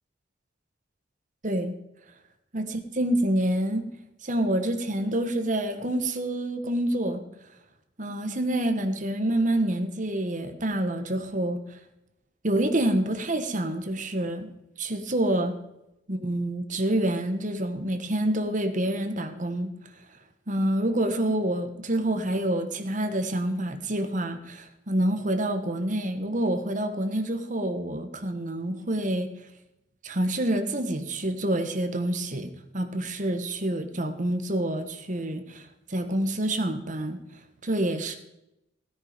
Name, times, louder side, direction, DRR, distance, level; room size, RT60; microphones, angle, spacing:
voice 1, 1.4-1.7 2.5-3.8 4.2-7.2 8.0-11.6 12.4-14.5 14.8-15.6 16.1-19.7 20.5-29.3 30.0-37.2 37.6-38.2, right 1 dB, 40° right, 8 dB, 1.4 m, -27 dB
16.5 x 9.6 x 5.2 m, 0.86 s
head